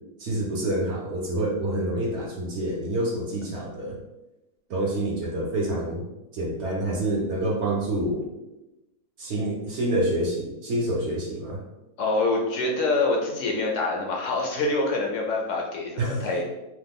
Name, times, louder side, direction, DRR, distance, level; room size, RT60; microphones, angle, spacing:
voice 1, 0.2-4.0 4.7-6.1 6.3-8.3 9.2-11.6 16.0-16.3, right 1 dB, 60° right, -2 dB, 0.8 m, -27 dB
voice 2, 12.0-16.5, left 2 dB, 70° left, 1 dB, 0.8 m, -25 dB
3.0 x 2.1 x 3.5 m, 0.97 s
omnidirectional pair, 1.5 m